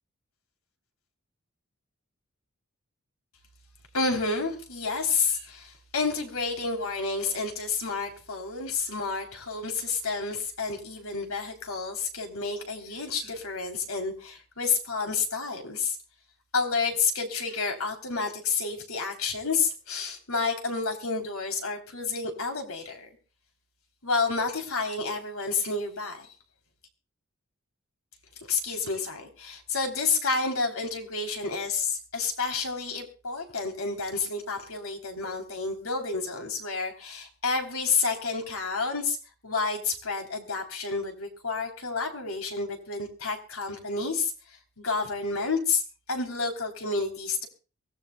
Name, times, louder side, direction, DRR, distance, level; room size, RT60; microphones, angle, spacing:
voice 1, 3.9-16.0 16.5-23.1 24.0-26.3 28.5-39.2 39.4-44.3 44.8-45.8 46.1-47.5, left 4 dB, 85° left, 3 dB, 3.2 m, -30 dB
23.5 x 17.0 x 2.2 m, 0.35 s
head